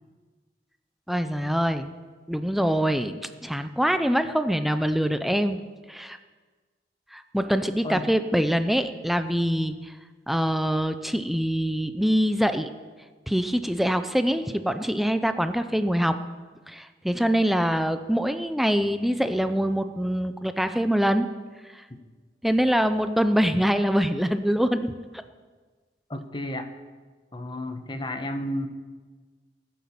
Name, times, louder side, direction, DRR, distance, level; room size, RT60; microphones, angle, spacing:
voice 1, 1.1-1.9 2.3-5.6 5.9-6.2 7.1-9.9 10.3-12.7 13.3-16.2 16.7-21.3 22.4-24.9, equal, ahead, 9 dB, 0.5 m, -24 dB
voice 2, 26.1-26.7 27.3-28.7, left 1 dB, 25° left, 8 dB, 1.1 m, -32 dB
16.0 x 9.4 x 7.2 m, 1.4 s
head